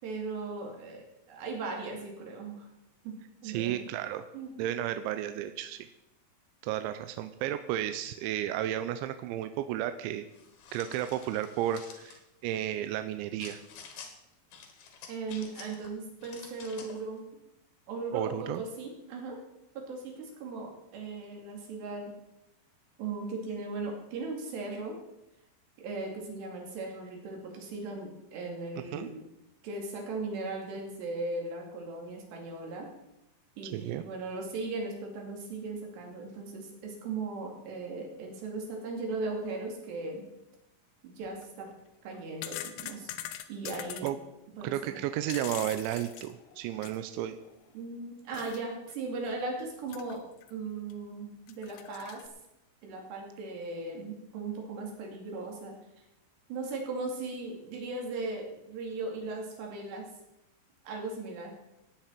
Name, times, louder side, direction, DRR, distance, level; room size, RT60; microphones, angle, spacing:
voice 1, 0.0-2.7 3.0-3.2 3.4-3.7 4.3-4.5 15.1-17.2 17.9-19.4 19.8-22.1 23.0-25.0 25.8-29.2 29.6-32.9 33.6-40.2 41.0-41.7 42.0-43.1 43.5-44.1 44.6-45.0 47.7-50.2 50.5-52.2 52.8-55.7 56.5-60.1 60.8-61.6, right 3 dB, 65° right, 1 dB, 4.3 m, -38 dB
voice 2, 3.4-4.2 4.6-5.9 6.6-10.2 10.7-13.6 18.1-18.6 28.9-29.1 33.7-34.0 44.0-44.2 44.6-47.4, right 12 dB, 85° right, 9 dB, 2.7 m, -33 dB
sound 1, 10.3-12.2 13.4-14.1 14.5-15.9 16.2-17.0, left 6 dB, 60° left, 3.2 m, -49 dB
sound 2, 41.2-41.4 42.1-44.1 45.0-47.1 47.5-47.6 48.3-48.6 48.9-49.0 49.9-50.5 50.9-51.0 51.5-52.3, left 12 dB, 80° left, 2.9 m, -42 dB
16.5 x 9.1 x 4.6 m, 0.88 s
omnidirectional pair, 5.7 m